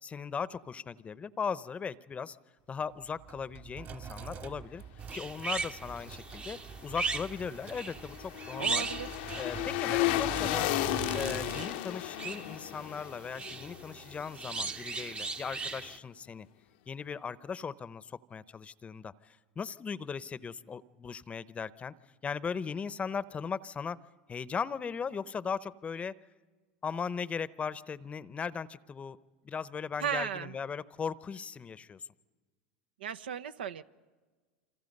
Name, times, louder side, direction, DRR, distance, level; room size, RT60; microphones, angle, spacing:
voice 1, 0.0-2.4 2.7-4.8 5.1-8.9 9.4-10.7 11.1-16.5 16.9-21.9 22.2-24.0 24.3-26.1 26.8-29.2 29.4-32.0, left 6 dB, 25° left, 17 dB, 0.7 m, -38 dB
Sink (filling or washing), 2.8-11.6, right 7 dB, 40° right, 1.9 m, -45 dB
sound 1, 5.0-16.0, right 4 dB, 20° right, 0.8 m, -39 dB
sound 2, 7.2-14.4 14.7-14.8, left 16 dB, 65° left, 0.7 m, -34 dB
voice 2, 8.6-9.1 30.0-30.5 33.0-33.8, right 8 dB, 85° right, 12 dB, 0.7 m, -35 dB
28.0 x 26.0 x 5.4 m, 1.4 s
hypercardioid pair, 100°, 5 cm